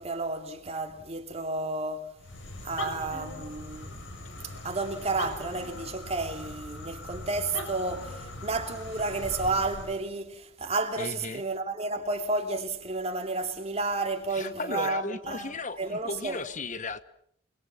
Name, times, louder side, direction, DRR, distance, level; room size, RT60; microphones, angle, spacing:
voice 1, 0.0-2.1 2.6-4.0 4.4-16.4, right 3 dB, 30° right, 3.0 m, -32 dB
sound 1, 2.2-10.1, left 2 dB, 75° left, 5.8 m, -40 dB
voice 2, 11.0-11.4 14.3-17.0, left 3 dB, 40° left, 1.1 m, -35 dB
29.0 x 22.0 x 7.4 m
head